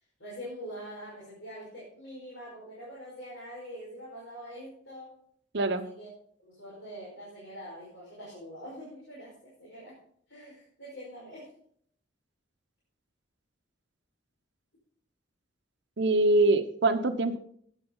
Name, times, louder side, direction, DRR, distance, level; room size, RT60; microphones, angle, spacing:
voice 1, 0.2-5.1 5.6-6.1 6.4-10.0 10.3-11.5, equal, 75° left, -6 dB, 5.0 m, -44 dB
voice 2, 16.0-17.4, right 2 dB, 65° right, 9 dB, 1.0 m, -24 dB
13.0 x 10.0 x 3.9 m, 0.63 s
head